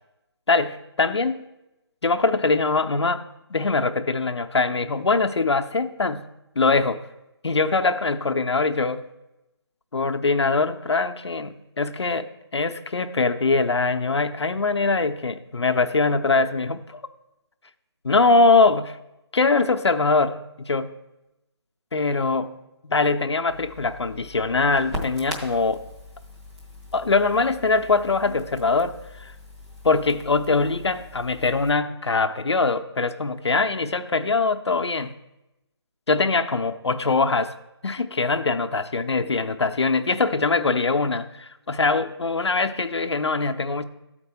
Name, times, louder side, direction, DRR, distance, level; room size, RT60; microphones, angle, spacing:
voice 1, 0.5-1.4 2.0-3.2 3.5-6.3 6.6-7.0 7.4-9.0 9.9-17.0 18.0-19.0 19.3-20.9 21.9-22.5 22.8-25.8 26.9-29.3 29.8-35.1 36.1-37.6 37.8-43.8, left 3 dB, 75° left, 9 dB, 0.6 m, -22 dB
Crackle, 23.5-31.7, left 1 dB, 5° right, 0.4 m, -40 dB
13.0 x 4.4 x 4.3 m, 0.93 s
figure-of-eight pair, 155°, 14 cm